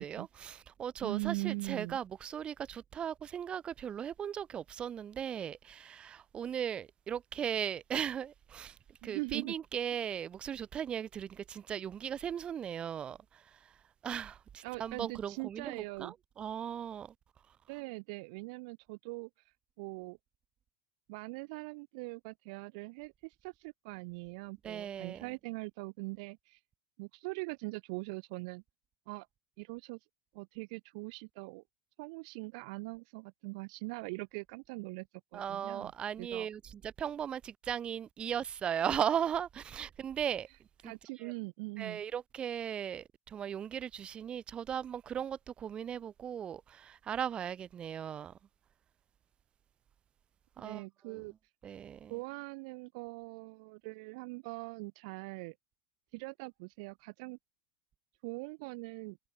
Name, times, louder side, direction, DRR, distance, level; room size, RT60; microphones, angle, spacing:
voice 1, 0.0-13.8 14.0-17.1 24.6-25.3 35.3-40.5 40.8-41.3 41.8-48.4 50.6-51.2 51.6-52.2, right 8 dB, 30° right, 1.0 m, -37 dB
voice 2, 1.0-2.0 9.0-9.5 14.6-16.1 17.7-19.3 19.8-20.2 21.1-26.6 27.0-28.6 29.1-29.3 29.6-30.0 30.3-31.6 32.0-35.1 35.3-35.9 36.2-36.5 40.8-42.0 50.6-51.3 52.1-55.6 56.1-57.4 58.2-59.2, right 28 dB, 60° right, 0.6 m, -41 dB
hypercardioid pair, 115°, 4 cm